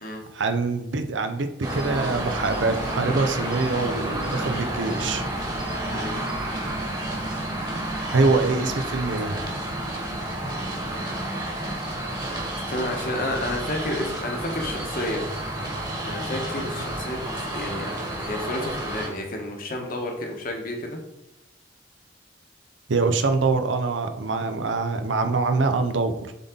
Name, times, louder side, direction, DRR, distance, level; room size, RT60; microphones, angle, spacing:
voice 1, 0.3-5.2 8.1-9.4 22.9-26.3, right 3 dB, 80° right, 8 dB, 0.7 m, -24 dB
sound 1, 1.6-19.1, right 1 dB, 25° right, 1.5 m, -30 dB
voice 2, 12.7-15.2 16.0-17.9 18.2-21.0, left 1 dB, 50° left, 1 dB, 1.3 m, -31 dB
7.4 x 4.0 x 3.8 m, 0.86 s
head